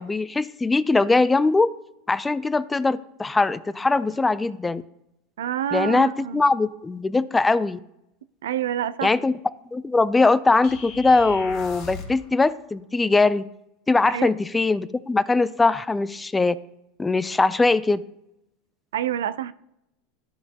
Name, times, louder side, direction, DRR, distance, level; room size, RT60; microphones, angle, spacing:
voice 1, 0.0-1.7 2.1-4.8 5.7-7.8 9.0-9.3 9.7-13.5 13.9-16.6 17.0-18.0, left 3 dB, 15° left, 0.3 m, -21 dB
voice 2, 5.4-6.4 8.4-9.2 14.1-14.3 18.9-19.5, right 10 dB, 85° right, 0.3 m, -27 dB
sound 1, 10.6-12.2, left 4 dB, 55° left, 1.5 m, -38 dB
13.0 x 4.4 x 2.8 m
hypercardioid pair, 105°, 0 cm